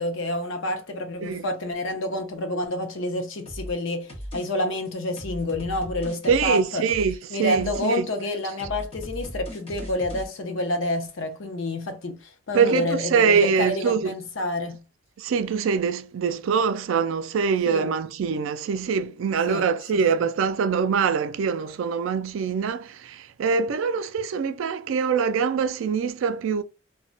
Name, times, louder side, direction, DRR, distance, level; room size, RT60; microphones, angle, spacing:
voice 1, 0.0-6.9 7.3-14.8 17.7-17.9 19.5-20.2, left 1 dB, 70° left, 0.6 m, -28 dB
sound 1, 3.5-3.8 4.1-4.5 4.7-7.2 7.5-7.9 8.2-10.3, equal, 30° left, 0.9 m, -37 dB
voice 2, 6.3-8.1 12.5-14.1 15.2-26.6, right 6 dB, 70° right, 0.3 m, -24 dB
2.2 x 2.1 x 3.8 m
head